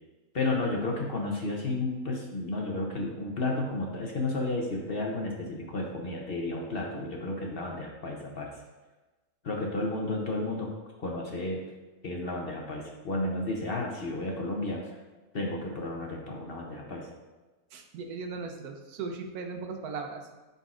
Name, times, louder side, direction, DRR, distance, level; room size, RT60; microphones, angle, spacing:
voice 1, 0.3-8.5 9.4-10.7 11.0-11.6 12.0-15.0 15.3-17.1, left 2 dB, 50° left, -1 dB, 0.8 m, -32 dB
voice 2, 17.7-20.2, right 4 dB, 80° right, 4 dB, 1.2 m, -37 dB
11.0 x 4.0 x 2.5 m, 1.2 s
omnidirectional pair, 1.6 m